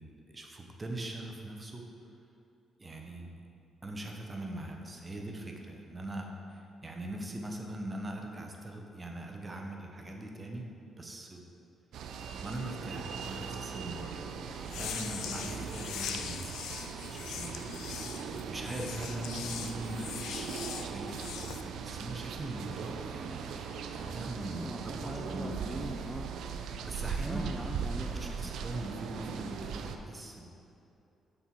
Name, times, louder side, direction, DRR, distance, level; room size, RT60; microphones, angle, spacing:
voice 1, 0.0-1.9 2.8-3.4 3.8-10.7 11.0-11.4 12.4-16.5 16.8-18.1 18.3-25.8 26.9-27.5 28.1-30.5, right 1 dB, 25° right, 2 dB, 0.8 m, -41 dB
sound 1, 11.9-30.0, right 6 dB, 75° right, 0.4 m, -39 dB
sound 2, 14.6-21.6, left 8 dB, 80° left, 0.3 m, -41 dB
voice 2, 24.5-26.3 27.2-28.6, equal, ahead, 1 dB, 0.4 m, -42 dB
6.5 x 4.5 x 4.5 m, 2.8 s
cardioid pair, 90°, 0 cm